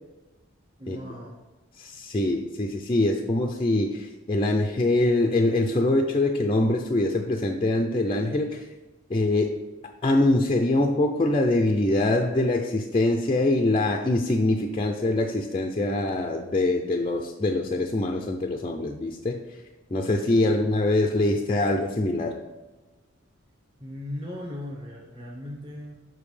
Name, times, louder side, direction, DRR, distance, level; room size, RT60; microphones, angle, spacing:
voice 1, 0.8-1.4 20.5-20.6 23.8-25.9, left 1 dB, 25° right, -3 dB, 0.9 m, -37 dB
voice 2, 1.8-8.7 9.1-9.6 10.0-19.6 19.9-22.4, left 2 dB, 25° left, 3 dB, 0.4 m, -24 dB
7.0 x 6.0 x 3.3 m, 1.1 s
head